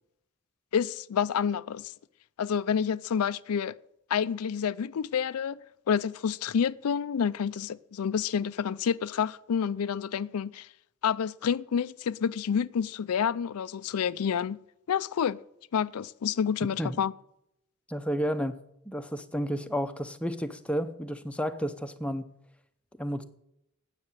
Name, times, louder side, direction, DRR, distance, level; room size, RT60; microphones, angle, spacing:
voice 1, 0.7-1.9 2.4-3.8 4.1-5.6 5.9-10.7 11.0-14.6 14.9-15.4 15.7-17.1, left 7 dB, 90° left, 0.4 m, -28 dB
voice 2, 17.9-18.5 18.9-22.2 23.0-23.2, equal, 5° left, 0.7 m, -31 dB
9.6 x 8.5 x 8.5 m
head